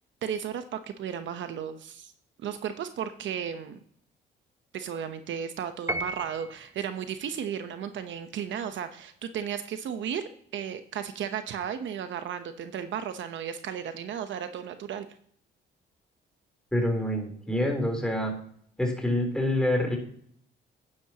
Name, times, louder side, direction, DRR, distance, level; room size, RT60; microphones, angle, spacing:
voice 1, 0.2-2.1 2.4-3.8 4.7-15.1, right 8 dB, 70° right, 9 dB, 0.9 m, -34 dB
Piano, 5.9-6.8, right 1 dB, 15° right, 0.7 m, -34 dB
voice 2, 16.7-18.4 18.8-20.0, left 1 dB, 5° left, 2 dB, 3.6 m, -26 dB
10.5 x 10.5 x 2.9 m, 0.62 s
cardioid pair, 90°, 20 cm